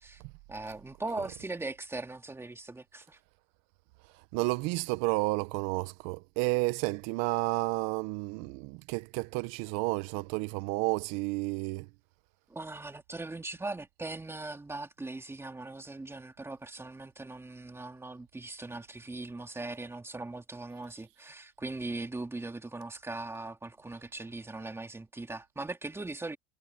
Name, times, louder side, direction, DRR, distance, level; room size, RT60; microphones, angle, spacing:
voice 1, 0.5-3.2 12.5-26.4, right 2 dB, 10° right, 2.8 m, -40 dB
voice 2, 4.3-11.9, right 24 dB, 60° right, 1.5 m, -31 dB
supercardioid pair, 115°, 30 cm